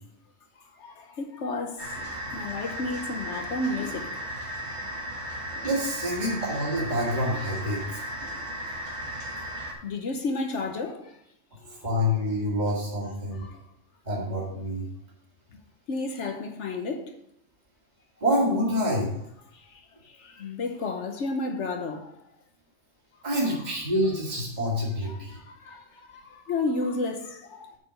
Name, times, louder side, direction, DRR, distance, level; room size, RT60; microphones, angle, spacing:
voice 1, 0.8-1.9 2.2-4.3 8.7-8.8 9.8-11.2 11.6-11.8 13.3-13.6 15.5-15.6 15.9-17.1 19.5-22.1 25.0-27.8, left 3 dB, 65° left, 1.2 m, -32 dB
sound 1, 1.8-9.7, equal, 65° right, 2.2 m, -35 dB
voice 2, 5.6-7.8 11.8-13.4 14.1-14.9 18.2-19.1 23.2-25.4, equal, 35° right, 2.2 m, -27 dB
8.4 x 5.0 x 6.4 m
omnidirectional pair, 1.3 m